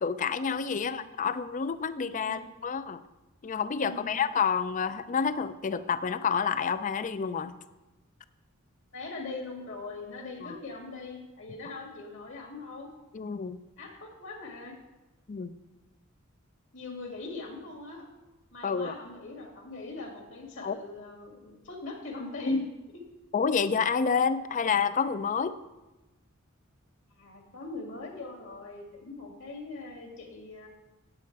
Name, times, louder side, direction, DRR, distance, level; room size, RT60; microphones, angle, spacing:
voice 1, 0.0-3.0 3.4-7.6 10.4-10.6 13.1-13.6 15.3-15.6 18.6-18.9 20.6-20.8 22.5-22.6 23.3-25.6, left 6 dB, 35° left, 13 dB, 0.4 m, -29 dB
voice 2, 3.8-4.2 8.9-12.9 13.8-14.8 16.7-18.0 18.5-23.0 27.2-30.7, left 3 dB, 60° left, 1 dB, 2.3 m, -41 dB
9.7 x 8.2 x 4.6 m, 1.1 s
head